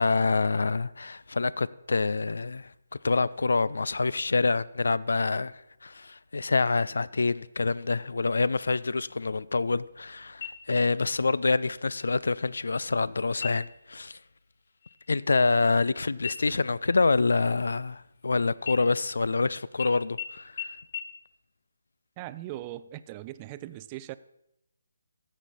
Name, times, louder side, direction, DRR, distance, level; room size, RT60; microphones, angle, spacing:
voice 1, 0.0-2.7 3.0-14.2 15.1-20.8, left 3 dB, 70° left, 0.4 m, -26 dB
sound 1, 10.4-11.1 11.5-11.6 12.1-12.6 13.3-13.9 14.3-14.5 14.8-15.9 16.2-18.2 18.6-19.4 19.8-19.9 20.2-20.3 20.6-20.7 20.9-21.0, left 8 dB, 50° left, 0.9 m, -40 dB
voice 2, 22.2-24.1, right 15 dB, 25° right, 0.3 m, -39 dB
15.0 x 6.2 x 4.1 m
figure-of-eight pair, 155°, 0 cm